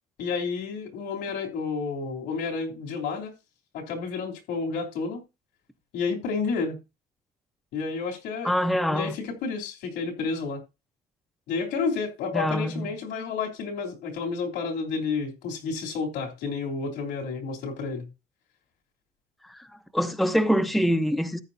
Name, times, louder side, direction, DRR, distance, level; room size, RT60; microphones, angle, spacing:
voice 1, 0.2-3.3 3.7-5.2 5.9-6.8 7.7-8.5 8.9-10.6 11.5-18.1, left 4 dB, 85° left, 3.3 m, -30 dB
voice 2, 8.4-9.1 12.3-12.9 19.5-19.6 19.9-21.4, equal, ahead, 0.9 m, -24 dB
14.0 x 8.9 x 2.7 m
cardioid pair, 110°, 17 cm